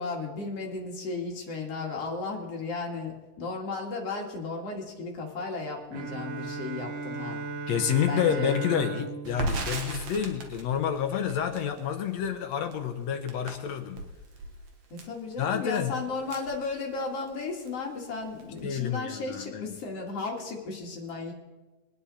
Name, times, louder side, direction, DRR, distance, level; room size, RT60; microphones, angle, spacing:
voice 1, 0.0-7.4 8.1-8.5 15.0-21.3, left 3 dB, 50° left, 0 dB, 3.2 m, -34 dB
Bowed string instrument, 5.9-10.8, right 4 dB, 85° right, 2.6 m, -37 dB
voice 2, 7.7-14.0 15.4-15.9 18.6-19.8, left 8 dB, 70° left, 6 dB, 1.9 m, -29 dB
Crackle, 9.3-17.3 17.7-17.8 18.1-18.8, right 3 dB, 60° right, 2.6 m, -38 dB
23.5 x 9.7 x 4.2 m, 1.2 s
omnidirectional pair, 3.7 m